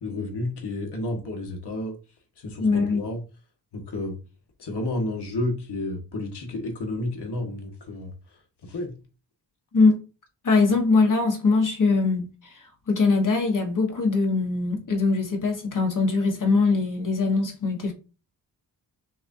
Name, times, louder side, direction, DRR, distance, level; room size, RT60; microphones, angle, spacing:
voice 1, 0.0-2.0 2.4-3.2 3.7-4.2 4.6-9.0, left 2 dB, 65° left, 1.5 m, -31 dB
voice 2, 2.6-3.0 9.7-10.0 10.4-12.5 12.9-17.9, left 3 dB, 45° left, 1.4 m, -22 dB
6.2 x 2.5 x 2.7 m
cardioid pair, 85°, 43 cm